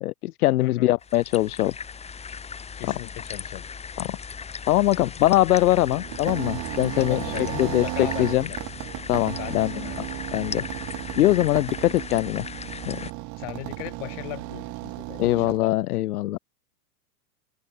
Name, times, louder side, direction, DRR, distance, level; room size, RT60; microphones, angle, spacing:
voice 1, 0.0-1.7 2.9-3.0 4.0-4.2 4.7-7.2 7.6-7.8 8.2-8.5 9.1-9.7 10.3-10.6 11.2-12.5 12.9-13.0 15.2-16.4, left 15 dB, 75° left, 1.8 m, -22 dB
voice 2, 0.6-0.9 2.8-3.7 7.0-8.6 9.4-10.4 13.4-15.8, left 28 dB, 50° left, 6.3 m, -37 dB
sound 1, 1.0-13.1, left 6 dB, 15° left, 2.9 m, -38 dB
sound 2, 5.7-15.6, right 22 dB, 40° right, 3.1 m, -35 dB
open air
supercardioid pair, 140°, 45 cm